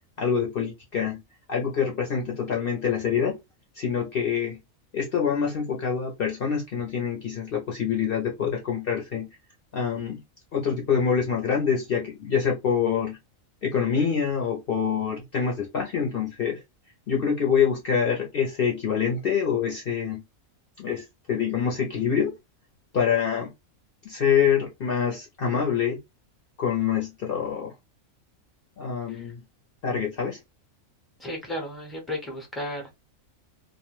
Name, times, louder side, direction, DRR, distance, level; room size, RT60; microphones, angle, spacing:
voice 1, 0.2-1.2 1.5-3.4 3.8-4.6 4.9-9.3 9.7-10.2 10.5-13.2 13.6-16.6 17.1-20.2 20.8-22.3 22.9-23.5 24.0-26.0 26.6-27.7 28.8-29.4 29.8-30.4, left 7 dB, 55° left, 0.7 m, -25 dB
voice 2, 31.2-32.9, left 1 dB, ahead, 0.6 m, -34 dB
2.5 x 2.1 x 3.0 m
omnidirectional pair, 1.4 m